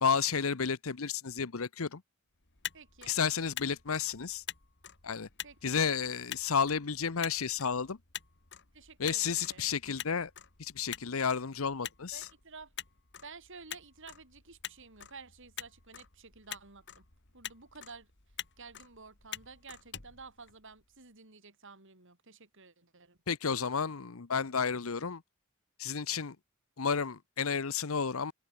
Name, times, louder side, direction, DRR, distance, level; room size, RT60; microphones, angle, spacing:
voice 1, 0.0-2.0 3.1-4.4 5.0-5.3 5.6-8.0 9.0-10.3 10.6-12.3 23.3-25.2 25.8-26.4 26.8-28.3, left 6 dB, 80° left, 0.9 m, -31 dB
Motor vehicle (road), 2.4-21.0, left 10 dB, 60° left, 3.2 m, -47 dB
voice 2, 2.7-3.1 5.4-5.8 8.7-9.6 11.8-12.7 13.2-17.1 17.3-18.1 18.6-23.2, right 4 dB, 65° right, 5.0 m, -52 dB
open air
head